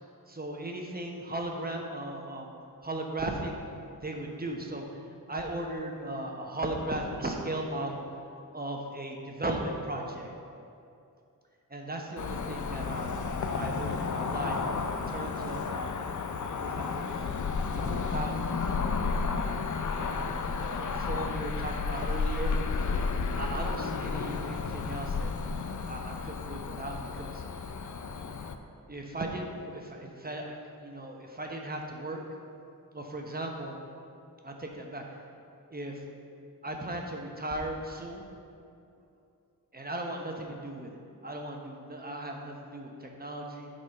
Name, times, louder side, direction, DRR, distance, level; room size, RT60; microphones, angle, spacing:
voice 1, 0.3-2.5 2.8-3.5 4.0-4.9 5.3-8.0 8.5-10.3 11.7-13.1 13.5-15.9 16.5-18.3 18.6-19.0 20.0-22.5 23.4-25.3 25.8-27.4 28.9-32.2 32.9-33.7 34.4-35.0 35.7-36.0 36.6-38.3 39.7-43.7, right 1 dB, 25° right, 1 dB, 1.0 m, -37 dB
Cricket / Motor vehicle (road), 12.2-28.6, left 4 dB, 55° left, 0.5 m, -32 dB
9.6 x 4.2 x 5.3 m, 2.5 s
wide cardioid pair, 85°, 36 cm